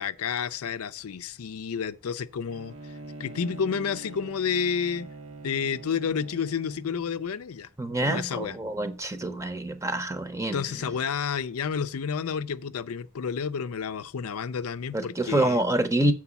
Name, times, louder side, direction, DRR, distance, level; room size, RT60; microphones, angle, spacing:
voice 1, 0.0-2.7 3.2-5.1 5.4-7.7 8.0-8.6 10.5-15.6, left 6 dB, 80° left, 0.5 m, -30 dB
Bowed string instrument, 2.5-7.1, right 3 dB, 70° right, 0.9 m, -44 dB
voice 2, 7.8-10.6 14.9-16.1, right 1 dB, 15° right, 0.7 m, -26 dB
7.1 x 4.8 x 6.9 m
head